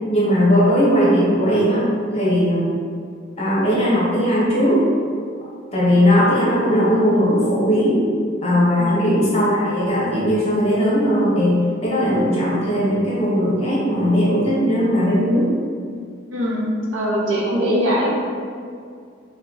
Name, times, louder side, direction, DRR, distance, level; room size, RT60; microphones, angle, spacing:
voice 1, 0.1-1.9 2.1-2.7 3.4-4.8 5.7-8.0 8.4-11.6 11.8-15.5, equal, 30° left, -6 dB, 0.7 m, -18 dB
voice 2, 16.3-16.7 16.9-18.2, equal, 80° right, -5 dB, 0.7 m, -21 dB
3.0 x 2.1 x 3.6 m, 2.2 s
head